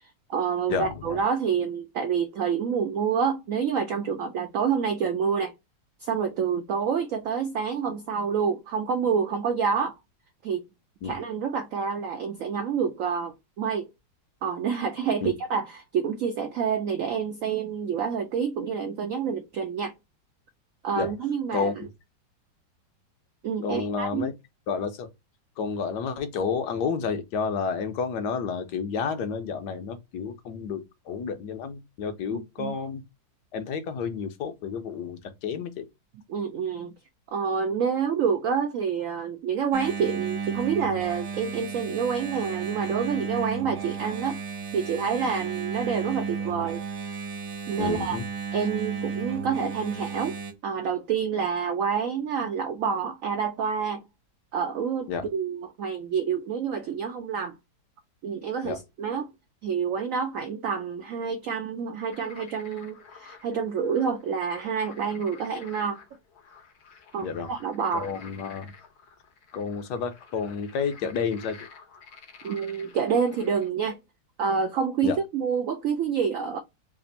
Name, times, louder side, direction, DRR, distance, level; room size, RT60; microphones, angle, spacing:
voice 1, 0.0-5.5 6.0-9.9 10.4-10.7 11.0-13.9 14.4-19.9 20.8-21.7 23.4-24.3 32.3-32.7 36.3-36.9 37.3-44.4 44.7-46.8 47.7-48.2 48.5-50.4 50.6-54.0 54.5-57.5 58.2-59.3 59.6-66.0 67.1-68.1 72.4-74.0 74.4-76.6, right 6 dB, 80° right, 0.7 m, -28 dB
voice 2, 0.7-1.2 11.0-11.1 15.2-15.3 21.0-21.1 21.5-21.9 23.6-24.3 24.7-25.1 25.6-33.0 33.5-35.9 47.8-48.3 55.1-55.2 58.6-58.8 67.2-67.5 67.9-68.7 69.5-71.6 75.0-75.2, left 5 dB, 75° left, 1.3 m, -30 dB
Engine, 39.7-50.5, right 6 dB, 60° right, 1.4 m, -33 dB
sound 1, 62.1-73.7, left 5 dB, 55° left, 0.7 m, -50 dB
3.4 x 2.5 x 3.9 m
omnidirectional pair, 1.9 m